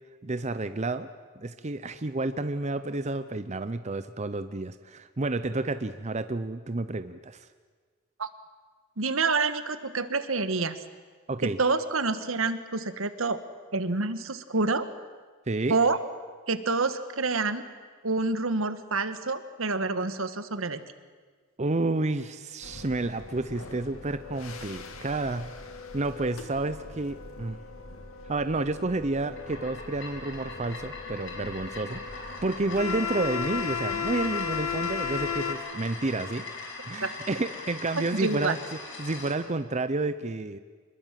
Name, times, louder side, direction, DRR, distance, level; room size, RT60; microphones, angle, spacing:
voice 1, 0.2-1.1 1.4-7.5 11.3-11.6 15.5-15.8 21.6-25.5 25.9-27.6 28.3-36.4 36.8-38.6 39.0-40.6, right 2 dB, 35° right, 11 dB, 0.7 m, -30 dB
voice 2, 9.0-10.8 11.4-13.4 13.7-14.9 15.7-16.0 16.5-17.6 18.0-20.8 37.0-37.1 38.2-38.5, right 3 dB, 75° right, 11 dB, 1.5 m, -27 dB
sound 1, 22.6-35.6, left 6 dB, 85° left, 2.3 m, -36 dB
sound 2, 29.2-39.4, left 3 dB, 65° left, 6.1 m, -41 dB
26.0 x 21.5 x 7.6 m, 1.5 s
head